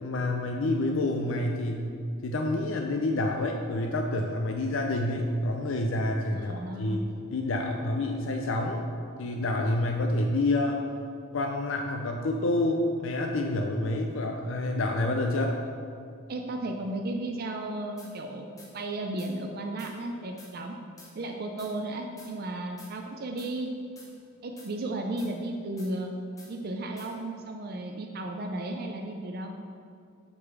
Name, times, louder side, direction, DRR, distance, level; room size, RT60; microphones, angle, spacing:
voice 1, 0.0-1.8 2.2-7.0 7.3-8.8 9.2-10.8 11.3-15.6, left 2 dB, 70° left, 2 dB, 0.5 m, -28 dB
voice 2, 6.3-7.0 16.3-18.5 18.7-20.7 21.1-23.7 24.4-26.1 26.5-29.5, right 2 dB, 50° right, 3 dB, 0.4 m, -34 dB
sound 1, 18.0-18.1 18.6-18.7 19.2-19.3 19.8-19.9 20.4-20.5 21.0-21.1 21.6-21.7 22.2-22.3 22.8-22.9 23.4-23.5 24.0-24.1 24.6-24.7 25.2-25.3 25.8-25.9 26.4-26.5 27.0-27.1, left 2 dB, 15° left, 1.1 m, -51 dB
6.2 x 3.8 x 6.0 m, 2.3 s
head